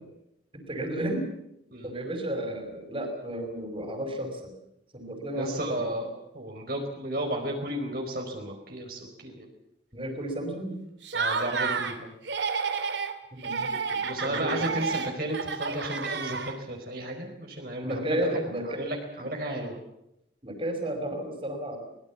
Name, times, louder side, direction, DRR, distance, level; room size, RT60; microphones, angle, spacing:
voice 1, 0.5-1.3 1.8-4.5 4.9-5.8 9.9-10.8 13.3-14.8 17.8-18.8 20.4-21.9, right 1 dB, 30° right, 5 dB, 5.5 m, -33 dB
voice 2, 5.4-9.5 11.1-12.1 14.0-19.8, right 1 dB, 55° right, 1 dB, 4.6 m, -33 dB
Laughter, 11.0-12.0 12.2-13.1 13.4-16.8, right 5 dB, 80° right, 2.5 m, -30 dB
24.0 x 21.0 x 7.3 m, 0.82 s
head